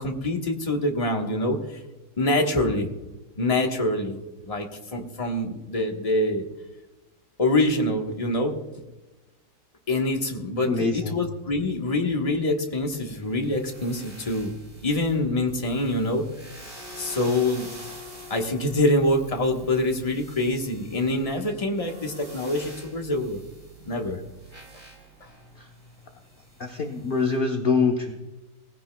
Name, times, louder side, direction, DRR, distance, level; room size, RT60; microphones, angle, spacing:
voice 1, 0.0-1.6 2.2-2.9 3.4-6.4 7.4-8.6 9.9-16.2 17.0-17.7 18.3-23.4 23.8-24.2, left 1 dB, 20° left, 2 dB, 1.2 m, -25 dB
voice 2, 10.6-11.2 25.6-25.7 26.6-28.1, left 4 dB, 35° left, 3 dB, 0.9 m, -24 dB
sound 1, 12.7-27.4, right 1 dB, 45° right, 6.0 m, -46 dB
19.0 x 15.5 x 2.3 m, 1.1 s
omnidirectional pair, 2.1 m